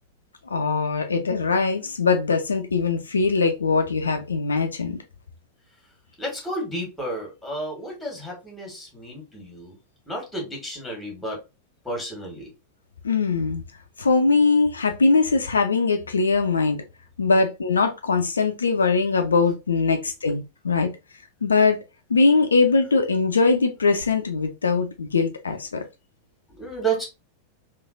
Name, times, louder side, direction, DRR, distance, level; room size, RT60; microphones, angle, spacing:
voice 1, 0.5-5.0 13.0-13.6 14.0-16.8 17.2-20.9 21.4-21.8 22.1-25.8, left 4 dB, 75° left, 0.3 m, -21 dB
voice 2, 6.2-9.7 10.1-11.4 11.8-12.5 26.5-27.0, right 2 dB, 5° left, 1.4 m, -31 dB
3.1 x 2.4 x 2.4 m
figure-of-eight pair, 90°, 0 cm